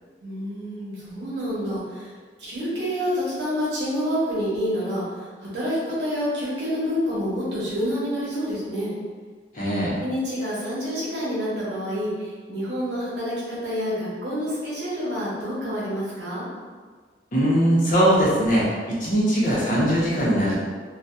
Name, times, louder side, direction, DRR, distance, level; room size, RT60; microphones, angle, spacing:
voice 1, 0.2-2.1 2.4-8.9 10.0-16.5, equal, 75° right, -8 dB, 0.9 m, -28 dB
voice 2, 9.5-10.0 17.3-18.7 19.0-20.6, equal, 45° left, -7 dB, 0.7 m, -20 dB
2.6 x 2.2 x 2.3 m, 1.5 s
head